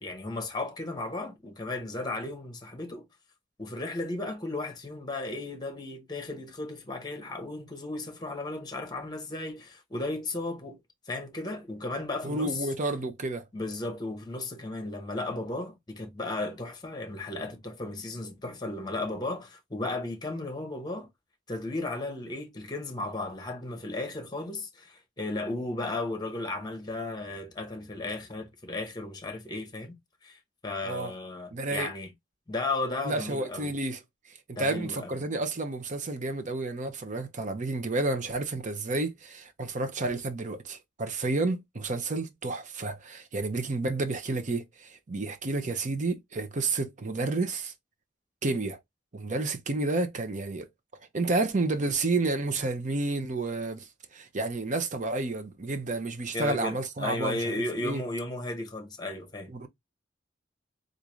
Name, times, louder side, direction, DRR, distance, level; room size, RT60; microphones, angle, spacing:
voice 1, 0.0-3.1 3.6-10.8 11.1-12.6 13.5-21.1 21.5-29.9 30.2-32.1 32.5-33.7 34.6-35.1 56.3-59.5, left 2 dB, 20° left, 1.0 m, -35 dB
voice 2, 12.2-13.4 30.8-31.1 31.5-31.9 33.0-34.0 34.5-47.7 48.4-48.8 49.1-50.7 51.1-53.9 54.1-57.6 57.8-58.0 59.5-59.7, right 2 dB, 40° right, 0.7 m, -30 dB
3.7 x 2.6 x 3.0 m
head